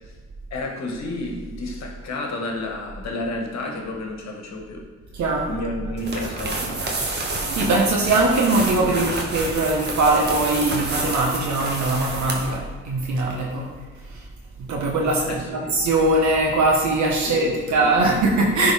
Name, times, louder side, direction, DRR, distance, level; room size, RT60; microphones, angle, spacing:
voice 1, 0.5-4.9 5.5-6.8 15.2-15.8 17.2-18.1, left 2 dB, 60° left, 1 dB, 1.3 m, -31 dB
voice 2, 5.2-5.5 7.5-13.6 14.7-18.7, right 2 dB, 70° right, -1 dB, 1.1 m, -21 dB
sound 1, 6.0-12.6, right 2 dB, 35° right, 1.2 m, -28 dB
10.0 x 3.9 x 3.5 m, 1.4 s
cardioid pair, 90°, 30 cm